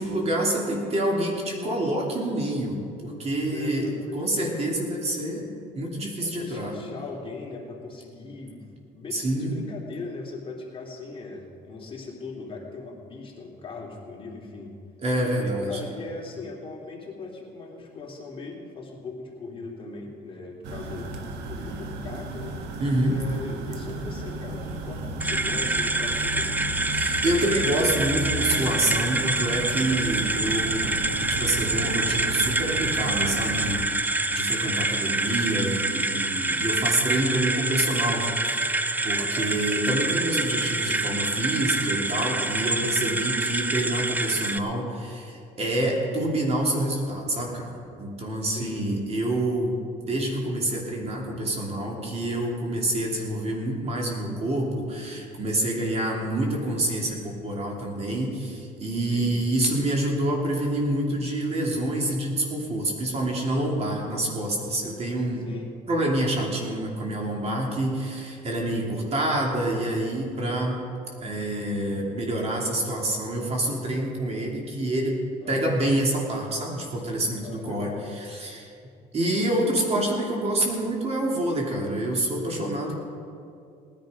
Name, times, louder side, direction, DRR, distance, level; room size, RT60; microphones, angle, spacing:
voice 1, 0.0-3.9 4.1-6.7 9.1-9.6 15.0-15.8 22.8-23.2 26.9-30.9 31.3-38.8 39.0-65.5 65.9-70.8 71.2-78.7 79.1-83.0, right 1 dB, 40° right, -1 dB, 2.9 m, -27 dB
voice 2, 3.5-4.5 6.2-8.6 8.9-14.8 15.2-21.1 21.5-22.7 23.0-26.7 39.2-39.5 48.5-48.8 59.0-59.3 65.3-65.7 75.4-75.8 77.4-78.0 82.8-83.0, left 3 dB, 30° left, -2 dB, 2.8 m, -39 dB
sound 1, 20.6-33.8, right 2 dB, 85° right, 1.4 m, -34 dB
sound 2, 25.2-44.6, right 2 dB, 10° right, 0.5 m, -26 dB
18.5 x 10.5 x 5.2 m, 2.5 s
cardioid pair, 110°, 17 cm